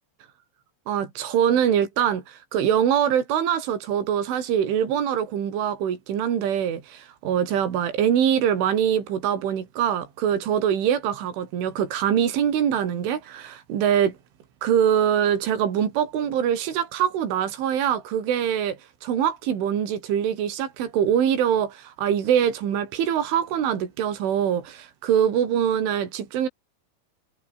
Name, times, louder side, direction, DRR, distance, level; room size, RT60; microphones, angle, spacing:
voice 1, 0.9-14.2 14.6-26.5, right 9 dB, 75° right, 6.0 m, -23 dB
omnidirectional pair, 5.6 m